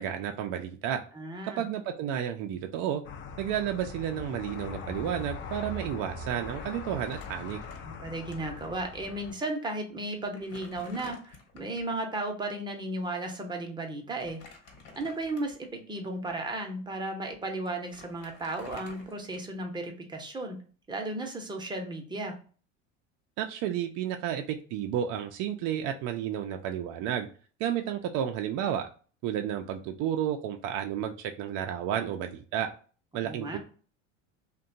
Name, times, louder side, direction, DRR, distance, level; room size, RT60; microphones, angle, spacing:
voice 1, 0.0-1.0 1.6-3.0 3.4-7.6 23.4-27.3 27.6-28.9 29.2-32.7 33.1-33.6, right 10 dB, 50° right, 4 dB, 0.4 m, -31 dB
voice 2, 1.1-1.7 7.8-14.4 15.0-20.6 20.9-22.3 33.2-33.6, right 2 dB, 10° right, 2 dB, 0.7 m, -35 dB
sound 1, 3.0-9.3, left 4 dB, 35° left, 0.4 m, -41 dB
Crumpling crinkling, 7.0-8.3 8.6-8.7 9.6-9.7 10.1-11.9 14.1-15.7 16.3-16.4 17.3-17.4 17.7-19.7, left 3 dB, 60° left, 1.2 m, -51 dB
2.7 x 2.2 x 2.6 m, 0.39 s
hypercardioid pair, 85°, 38 cm